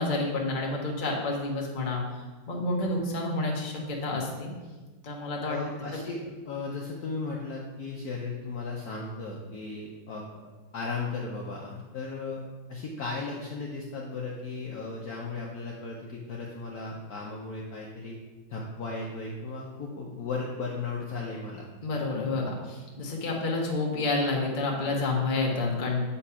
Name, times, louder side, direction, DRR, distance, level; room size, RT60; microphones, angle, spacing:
voice 1, 0.0-2.0 2.5-4.5 5.0-5.6 21.8-26.0, left 2 dB, 35° left, -1 dB, 0.9 m, -29 dB
voice 2, 5.5-10.2 10.7-12.4 12.7-18.2 18.5-21.7, left 3 dB, 60° left, -2 dB, 1.0 m, -36 dB
8.2 x 3.1 x 5.6 m, 1.3 s
omnidirectional pair, 2.2 m